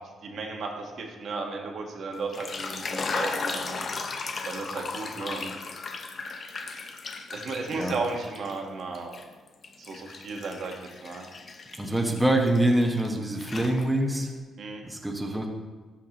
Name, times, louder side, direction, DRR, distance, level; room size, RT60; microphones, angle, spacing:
voice 1, 0.2-3.9 4.4-5.6 7.3-9.2 9.8-11.2 14.6-14.9, right 3 dB, 60° right, 2 dB, 1.4 m, -34 dB
sound 1, 2.2-8.6 8.9-13.1 13.4-14.2, left 4 dB, 45° left, 0.8 m, -36 dB
voice 2, 11.7-14.3 14.8-15.5, right 1 dB, 10° right, 0 dB, 1.2 m, -25 dB
13.5 x 5.9 x 3.0 m, 1.4 s
cardioid pair, 90°, 0 cm